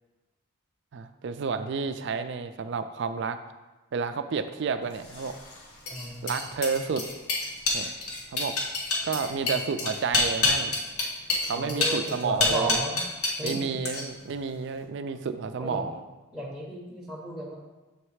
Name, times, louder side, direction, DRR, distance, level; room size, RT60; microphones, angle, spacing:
voice 1, 0.9-3.4 3.9-5.3 6.2-7.1 7.7-7.9 8.3-8.6 9.0-10.8 11.4-12.8 13.4-16.0, right 5 dB, 55° right, 10 dB, 0.3 m, -30 dB
sound 1, 5.0-13.6 13.9-14.3, left 3 dB, 90° left, 1.0 m, -28 dB
voice 2, 5.9-6.4 11.5-13.0 13.4-13.6 15.6-15.9 16.3-17.6, right 1 dB, 5° right, -6 dB, 0.7 m, -34 dB
7.1 x 3.3 x 4.6 m, 1.2 s
head